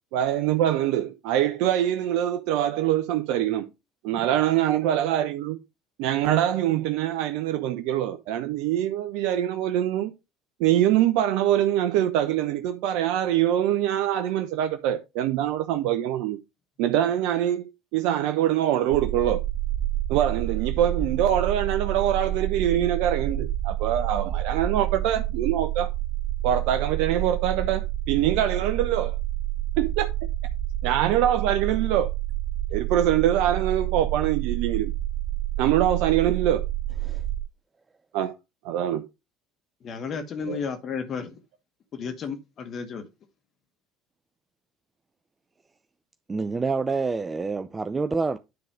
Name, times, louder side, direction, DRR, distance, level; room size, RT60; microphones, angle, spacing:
voice 1, 0.1-3.7 4.0-5.6 6.0-10.1 10.6-16.4 16.8-19.4 20.1-25.9 26.4-29.2 29.8-30.1 30.8-32.1 32.7-34.9 35.6-36.6 38.1-38.3 38.6-39.0 40.5-40.6, right 11 dB, 70° right, 0.8 m, -24 dB
sound 1, 18.9-37.4, right 14 dB, 45° right, 1.0 m, -29 dB
voice 2, 39.8-41.4 41.9-43.1, left 6 dB, 45° left, 2.0 m, -33 dB
voice 3, 46.3-48.4, right 4 dB, 25° right, 0.6 m, -27 dB
9.8 x 4.0 x 5.1 m
hypercardioid pair, 70°, 0 cm